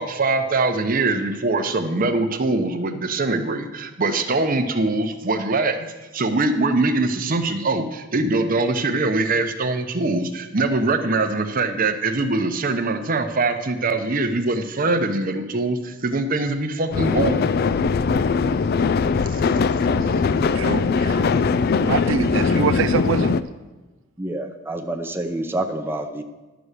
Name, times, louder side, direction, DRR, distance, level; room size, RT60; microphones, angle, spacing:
voice 1, 0.0-17.4 19.3-19.4, right 3 dB, 45° right, 7 dB, 0.8 m, -23 dB
sound 1, 16.9-23.4, left 5 dB, 50° left, 0.4 m, -20 dB
voice 2, 20.5-21.3 21.8-23.4, right 6 dB, 75° right, 11 dB, 0.4 m, -25 dB
voice 3, 24.2-26.2, right 1 dB, 10° right, 3 dB, 0.6 m, -28 dB
11.5 x 6.0 x 6.7 m, 1.1 s
head